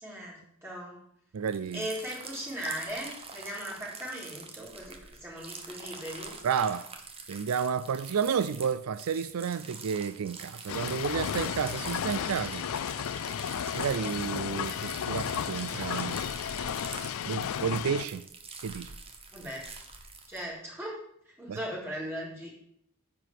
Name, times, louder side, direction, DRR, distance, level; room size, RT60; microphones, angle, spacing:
voice 1, 0.0-1.0 1.7-6.3 19.3-19.6 20.3-21.0 21.4-22.5, equal, 10° right, 4.2 m, -38 dB
voice 2, 1.3-1.9 6.4-6.9 7.3-12.6 13.7-16.2 17.3-18.2 18.6-18.9 21.5-21.6, right 7 dB, 80° right, 0.4 m, -31 dB
sound 1, 1.4-20.4, right 4 dB, 25° right, 1.2 m, -45 dB
sound 2, 10.7-18.0, left 8 dB, 70° left, 0.4 m, -33 dB
9.8 x 4.9 x 7.5 m
head